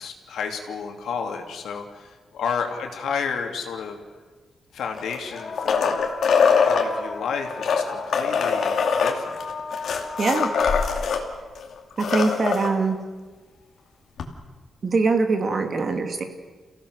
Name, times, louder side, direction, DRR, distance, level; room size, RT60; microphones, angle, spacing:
voice 1, 0.0-4.0 4.7-6.1 6.5-9.4, left 6 dB, 85° left, 3 dB, 3.0 m, -31 dB
sound 1, 3.1-3.2 5.2-11.4 12.8-12.9 13.8-13.9, left 4 dB, 35° left, 2.7 m, -35 dB
sound 2, 4.9-6.9 7.5-11.2 11.6-11.7 11.9-12.7 14.2-14.3, left 6 dB, 60° left, 2.5 m, -22 dB
voice 2, 10.2-10.5 12.0-13.0 14.8-16.2, right 4 dB, 35° right, 5 dB, 2.4 m, -22 dB
29.5 x 16.5 x 6.5 m, 1.3 s
wide cardioid pair, 160°, 0 cm